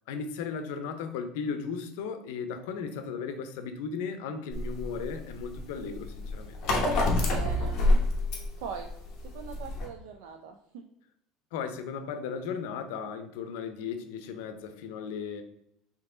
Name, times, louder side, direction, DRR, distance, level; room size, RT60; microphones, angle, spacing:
voice 1, 0.1-6.6 11.5-15.4, left 6 dB, 85° left, 8 dB, 0.6 m, -36 dB
sound 1, 4.5-9.9, left 2 dB, 40° left, 0.9 m, -27 dB
voice 2, 7.2-7.8 8.6-8.9 9.2-10.8, right 6 dB, 80° right, 4 dB, 0.4 m, -41 dB
4.5 x 2.8 x 3.7 m, 0.77 s
cardioid pair, 175°, 0 cm